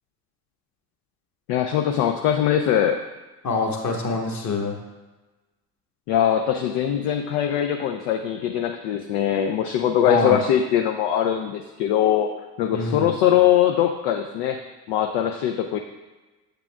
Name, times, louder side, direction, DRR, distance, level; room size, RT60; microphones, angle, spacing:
voice 1, 1.5-3.0 6.1-12.3 12.6-14.6 14.9-15.8, left 10 dB, 55° left, 4 dB, 0.6 m, -21 dB
voice 2, 3.4-4.8 10.1-10.4 12.7-13.1, left 3 dB, 35° left, 1 dB, 1.3 m, -25 dB
7.6 x 6.8 x 2.3 m, 1.2 s
figure-of-eight pair, 55°, 48 cm